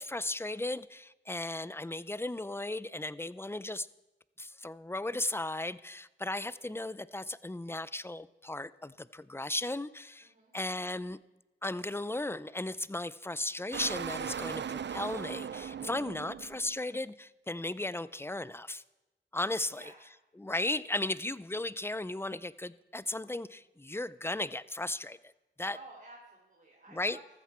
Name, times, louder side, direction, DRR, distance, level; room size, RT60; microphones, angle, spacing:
voice 1, 0.0-3.9 4.4-11.2 11.6-18.8 19.3-19.8 20.4-25.3 25.6-25.8 26.9-27.2, left 2 dB, 10° left, 18 dB, 0.5 m, -36 dB
voice 2, 10.2-10.5 19.7-20.0 25.7-27.2, right 2 dB, 45° right, -3 dB, 3.0 m, -52 dB
sound 1, 13.7-16.7, right 8 dB, 65° right, 0.4 m, -38 dB
14.0 x 13.5 x 4.4 m, 1.0 s
cardioid pair, 40°, 20 cm